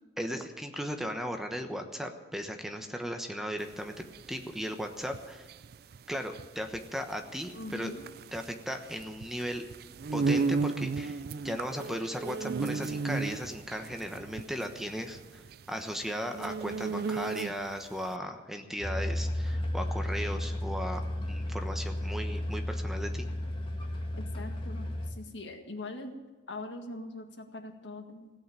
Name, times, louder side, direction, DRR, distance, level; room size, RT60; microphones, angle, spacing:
voice 1, 0.2-5.5 6.1-7.9 8.3-9.6 10.1-11.2 11.4-15.4 15.7-23.3, equal, ahead, 5 dB, 1.1 m, -36 dB
sound 1, 3.6-17.8, right 4 dB, 55° right, 0.4 m, -34 dB
voice 2, 7.5-8.0 24.1-26.2 26.5-28.3, left 2 dB, 85° left, 5 dB, 1.8 m, -42 dB
sound 2, 18.8-25.1, left 1 dB, 30° left, 1.8 m, -33 dB
16.5 x 8.7 x 8.9 m, 1.3 s
head